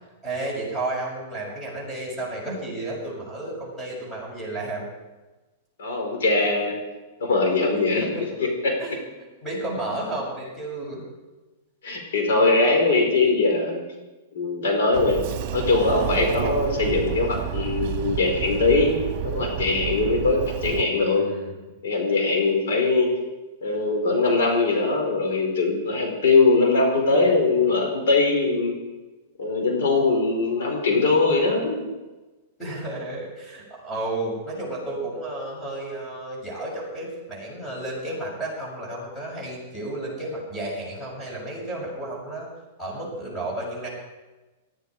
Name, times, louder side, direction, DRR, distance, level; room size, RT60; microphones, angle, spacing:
voice 1, 0.2-4.9 7.9-8.3 8.8-9.0 9.4-11.0 21.0-21.6 32.6-42.5 42.8-43.9, right 2 dB, 10° left, -4 dB, 7.0 m, -32 dB
voice 2, 5.8-6.8 7.2-8.1 8.4-8.7 11.8-13.8 14.3-15.2 15.5-19.0 19.2-21.2 21.8-23.1 23.6-28.7 29.4-31.8, left 3 dB, 80° left, 2 dB, 4.8 m, -21 dB
Sliding door, 14.9-20.8, right 11 dB, 45° right, 1.5 m, -30 dB
19.0 x 14.5 x 4.9 m, 1.2 s
supercardioid pair, 155°, 0 cm